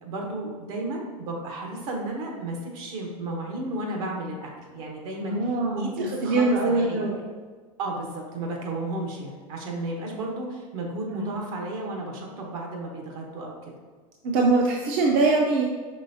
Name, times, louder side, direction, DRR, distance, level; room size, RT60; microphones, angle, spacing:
voice 1, 0.0-7.1 7.8-13.7, right 2 dB, 70° right, 0 dB, 1.1 m, -33 dB
voice 2, 5.2-7.2 11.1-11.2 14.2-15.6, right 3 dB, 50° right, -1 dB, 0.6 m, -23 dB
5.3 x 3.3 x 2.8 m, 1.5 s
hypercardioid pair, 105°, 19 cm